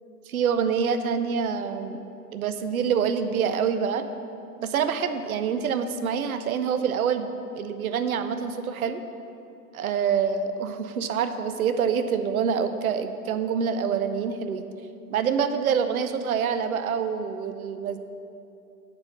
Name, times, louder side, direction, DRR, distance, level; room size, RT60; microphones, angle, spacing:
voice 1, 0.3-2.0 2.3-4.1 4.6-9.0 9.7-14.7 15.1-18.0, right 7 dB, 65° right, 9 dB, 0.8 m, -26 dB
7.5 x 6.9 x 7.2 m, 2.7 s
hypercardioid pair, 160°, 47 cm